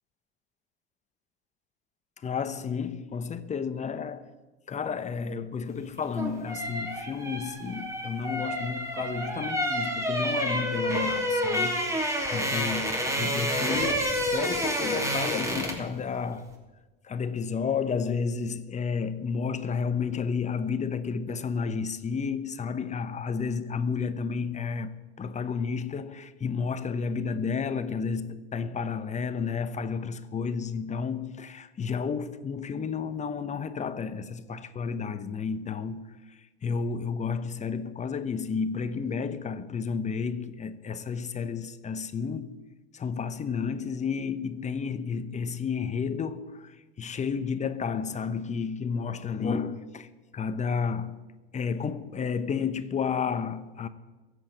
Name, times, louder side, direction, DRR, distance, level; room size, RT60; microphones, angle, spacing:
voice 1, 2.2-4.3 4.7-16.5 17.0-24.9 25.2-42.5 42.9-50.1 50.3-51.2 51.5-53.9, left 6 dB, 25° left, 1.0 m, -31 dB
sound 1, 5.9-15.9 16.2-16.4, equal, 10° right, 2.7 m, -29 dB
23.0 x 8.2 x 4.6 m
hypercardioid pair, 95°, 31 cm